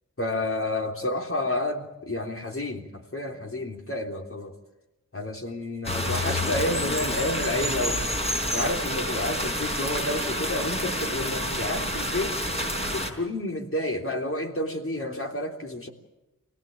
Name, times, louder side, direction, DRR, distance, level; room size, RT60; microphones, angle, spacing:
voice 1, 0.2-4.5 5.1-8.0 8.5-12.4 12.9-15.9, left 1 dB, 40° left, 3 dB, 3.4 m, -30 dB
sound 1, 5.8-13.1, equal, 20° left, 4.6 m, -28 dB
25.0 x 17.5 x 8.7 m, 0.98 s
wide cardioid pair, 60°, 33 cm